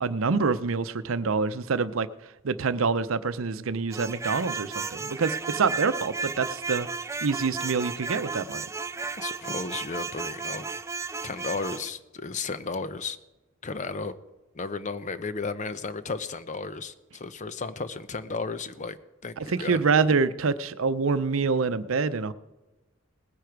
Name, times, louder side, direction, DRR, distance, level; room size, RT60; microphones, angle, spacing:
voice 1, 0.0-2.1 2.4-6.9 7.2-8.6 19.4-22.3, right 4 dB, 85° right, 13 dB, 0.6 m, -26 dB
sound 1, 3.9-11.9, right 4 dB, 15° right, 0.4 m, -34 dB
voice 2, 9.2-10.8 11.2-13.2 13.6-14.1 14.5-19.0 19.2-19.8, left 4 dB, 35° left, 13 dB, 0.6 m, -34 dB
19.5 x 9.9 x 4.6 m, 1.1 s
head